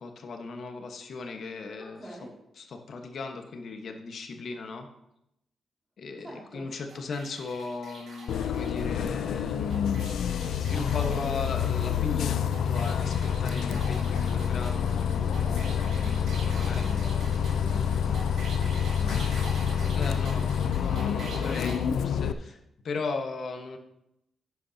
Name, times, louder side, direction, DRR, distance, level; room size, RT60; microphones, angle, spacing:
voice 1, 0.0-2.0 2.6-4.9 6.0-9.8 10.6-16.0 16.4-16.9 20.0-20.5 20.7-22.6 22.8-23.8, left 4 dB, 55° left, 4 dB, 1.3 m, -37 dB
voice 2, 1.8-2.3 6.2-6.7 15.2-17.2 17.6-20.1, equal, 10° right, -6 dB, 2.4 m, -44 dB
sound 1, 6.9-21.8, right 3 dB, 75° right, 2.8 m, -46 dB
Bus, 8.3-22.3, left 7 dB, 85° left, 0.4 m, -27 dB
11.0 x 9.4 x 2.8 m, 0.83 s
cardioid pair, 130°, 0 cm